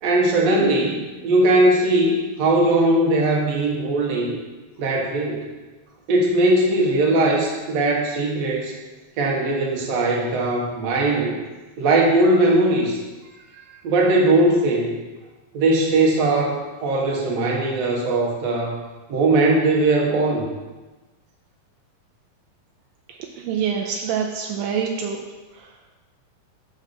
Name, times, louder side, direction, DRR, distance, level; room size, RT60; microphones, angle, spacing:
voice 1, 0.0-4.3 4.8-5.5 6.1-8.7 9.2-11.4 11.8-13.0 13.8-14.9 15.5-18.8 19.1-20.4, right 2 dB, 55° right, -1 dB, 2.1 m, -19 dB
voice 2, 23.5-25.2, right 7 dB, 80° right, 2 dB, 2.3 m, -25 dB
6.9 x 5.8 x 6.1 m, 1.2 s
omnidirectional pair, 4.1 m